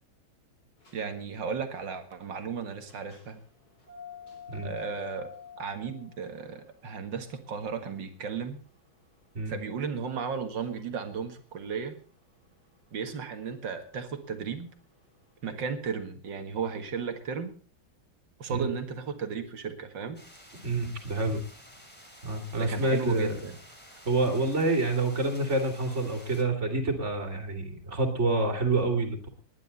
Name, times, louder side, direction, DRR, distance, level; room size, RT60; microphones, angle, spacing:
sound 1, 0.8-15.5, left 7 dB, 55° left, 4.5 m, -50 dB
voice 1, 0.9-3.4 4.5-5.3 5.6-8.6 9.5-12.0 12.9-14.7 15.4-17.5 18.4-20.2 22.6-23.6, right 6 dB, 75° right, 7 dB, 2.4 m, -35 dB
sound 2, 20.1-26.4, equal, 5° left, 2.9 m, -52 dB
voice 2, 20.6-21.4 22.2-23.4 24.0-29.3, right 2 dB, 40° right, 4 dB, 3.0 m, -27 dB
20.0 x 10.5 x 4.1 m, 0.40 s
omnidirectional pair, 2.0 m